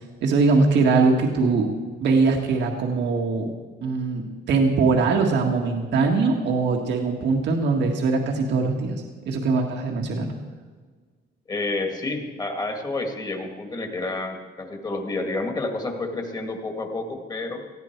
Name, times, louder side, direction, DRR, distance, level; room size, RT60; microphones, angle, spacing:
voice 1, 0.2-1.7 2.0-3.5 3.8-10.3, right 4 dB, 80° right, 2 dB, 1.8 m, -21 dB
voice 2, 11.5-17.6, left 2 dB, 20° left, 4 dB, 1.9 m, -29 dB
18.5 x 15.5 x 4.6 m, 1.5 s
cardioid pair, 165°, 18 cm